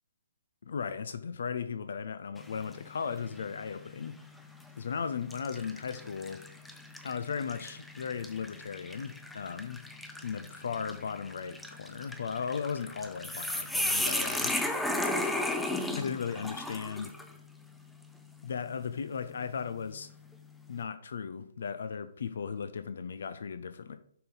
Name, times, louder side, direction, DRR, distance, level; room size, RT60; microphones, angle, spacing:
voice 1, 0.6-4.2 4.8-6.4 7.0-9.8 10.2-14.5 15.9-17.1 18.4-20.1 20.7-24.0, left 6 dB, 60° left, 0.6 m, -36 dB
sound 1, 2.4-2.9 3.4-3.5 4.5-4.7 5.3-17.3, left 1 dB, 5° left, 0.7 m, -35 dB
6.8 x 5.2 x 4.0 m
figure-of-eight pair, 130°, 0 cm